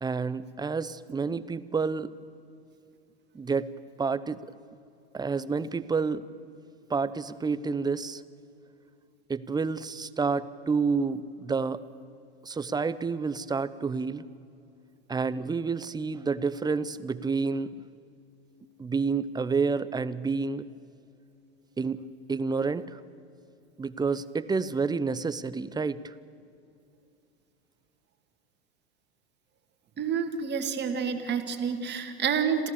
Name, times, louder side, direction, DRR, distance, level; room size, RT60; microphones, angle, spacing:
voice 1, 0.0-2.1 3.3-3.7 4.0-4.4 5.1-6.3 6.9-8.2 9.3-11.8 12.4-14.2 15.1-17.7 18.8-20.7 21.8-22.0 22.3-23.0 23.8-26.1, right 4 dB, 15° right, 16 dB, 0.7 m, -29 dB
voice 2, 30.0-32.7, right 7 dB, 35° right, 5 dB, 2.4 m, -29 dB
27.5 x 15.5 x 6.9 m, 2.6 s
hypercardioid pair, 95°, 32 cm